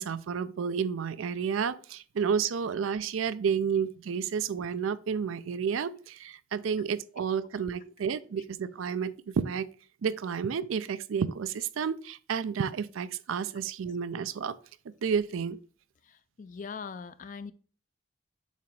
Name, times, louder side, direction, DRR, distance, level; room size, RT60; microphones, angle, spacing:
voice 1, 0.0-9.7 10.0-14.6 15.0-15.6, right 6 dB, 80° right, 0.4 m, -31 dB
voice 2, 16.0-17.5, left 5 dB, 40° left, 0.3 m, -42 dB
7.3 x 2.9 x 4.6 m
head